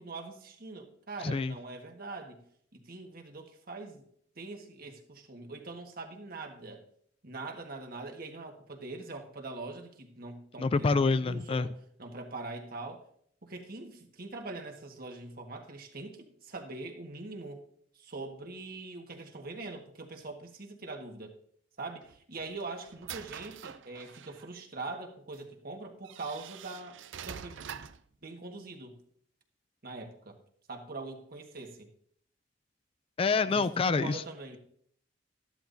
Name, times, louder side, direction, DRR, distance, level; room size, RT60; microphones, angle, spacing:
voice 1, 0.0-2.4 2.7-4.1 4.4-6.8 7.2-11.7 12.0-13.0 13.4-17.6 18.0-21.3 21.8-27.0 27.2-27.9 28.2-29.0 29.8-30.4 30.7-31.9 33.5-34.6, right 3 dB, 50° right, 3 dB, 1.6 m, -43 dB
voice 2, 1.2-1.5 10.6-11.7 33.2-34.2, left 4 dB, 30° left, 14 dB, 0.3 m, -27 dB
sound 1, 22.0-24.5 25.3-25.4 26.0-28.1, right 8 dB, 80° right, 0.5 m, -45 dB
13.5 x 12.0 x 2.7 m, 0.64 s
head